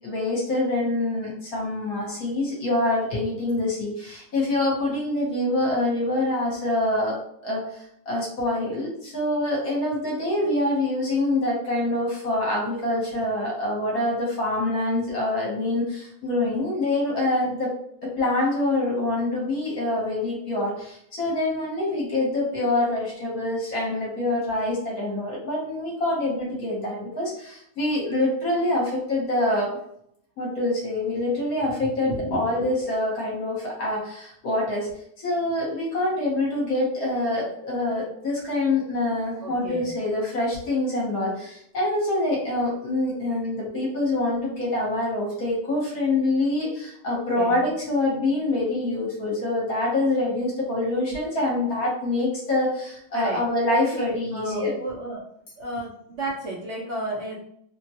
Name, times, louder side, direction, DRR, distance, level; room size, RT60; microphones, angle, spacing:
voice 1, 0.0-17.8 18.0-29.7 30.4-34.9 35.2-54.7, left 2 dB, 60° left, -3 dB, 1.2 m, -25 dB
voice 2, 39.4-39.9 47.3-47.7 53.1-53.4 53.9-55.2 55.6-57.4, right 1 dB, 70° right, -3 dB, 0.7 m, -33 dB
3.0 x 2.2 x 2.7 m, 0.70 s
omnidirectional pair, 2.0 m